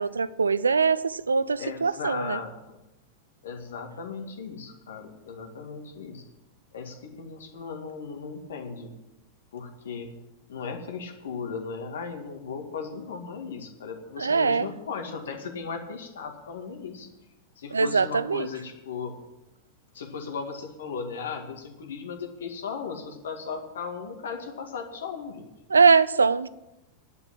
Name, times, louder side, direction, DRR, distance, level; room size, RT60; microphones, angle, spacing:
voice 1, 0.0-2.4 14.2-14.7 17.7-18.5 25.7-26.5, right 5 dB, 75° right, 0.5 m, -22 dB
voice 2, 1.6-2.8 3.4-6.2 6.7-8.9 9.5-10.1 10.5-17.1 17.6-19.2 19.9-25.5, left 5 dB, 65° left, 2.1 m, -36 dB
10.5 x 8.8 x 8.7 m
figure-of-eight pair, 90°, 0 cm